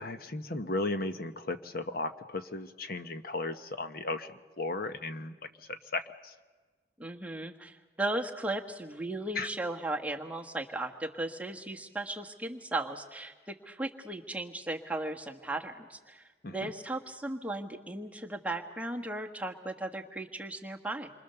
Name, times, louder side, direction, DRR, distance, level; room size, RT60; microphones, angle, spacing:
voice 1, 0.0-6.3 9.3-9.5 16.4-16.7, left 2 dB, 50° left, 9 dB, 1.0 m, -36 dB
voice 2, 7.0-21.1, right 2 dB, 5° right, 2 dB, 1.4 m, -36 dB
28.0 x 24.5 x 6.9 m, 1.4 s
head